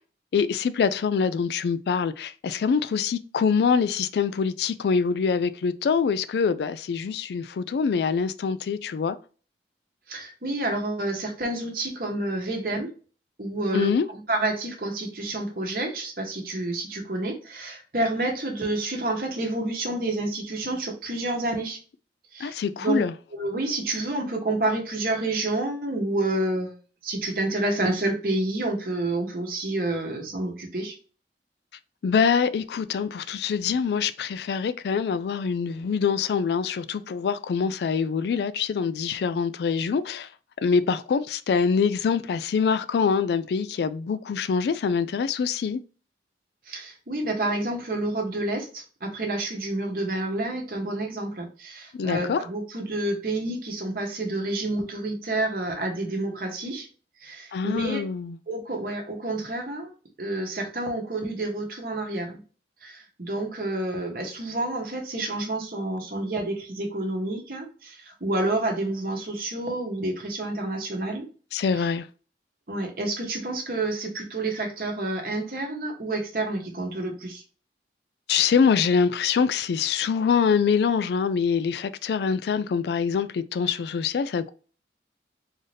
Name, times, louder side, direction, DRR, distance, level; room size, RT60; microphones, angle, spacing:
voice 1, 0.3-9.2 13.7-14.1 22.4-23.1 32.0-40.3 40.6-45.8 51.9-52.4 57.5-58.4 71.5-72.1 78.3-84.5, left 6 dB, 70° left, 0.3 m, -24 dB
voice 2, 10.1-12.9 13.4-21.8 22.3-23.0 23.3-26.7 27.0-31.0 46.7-56.9 57.2-58.0 58.5-59.9 60.2-62.4 62.8-71.3 72.7-77.4, right 2 dB, 55° right, 1.1 m, -29 dB
3.9 x 2.7 x 3.2 m
head